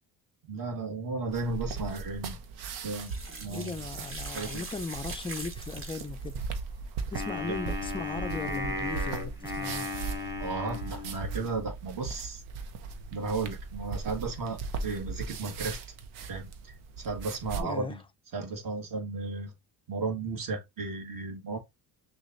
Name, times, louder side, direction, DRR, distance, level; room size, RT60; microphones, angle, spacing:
voice 1, 0.5-2.4 2.8-3.1 3.4-3.8 4.3-4.5 7.4-7.5 10.4-12.4 13.1-15.8 16.2-18.0 18.3-19.5 19.9-21.6, right 3 dB, 45° right, 1.7 m, -34 dB
sound 1, 1.3-17.6, right 4 dB, 75° right, 0.9 m, -38 dB
sound 2, 2.9-6.4 8.9-9.0, right 3 dB, 30° right, 1.2 m, -43 dB
voice 2, 3.5-6.4 7.1-9.9 17.6-18.0, left 4 dB, 15° left, 0.3 m, -37 dB
Wind instrument woodwind instrument, 7.1-11.6, left 2 dB, 5° right, 1.3 m, -36 dB
6.2 x 2.5 x 2.7 m
supercardioid pair, 85°, 46 cm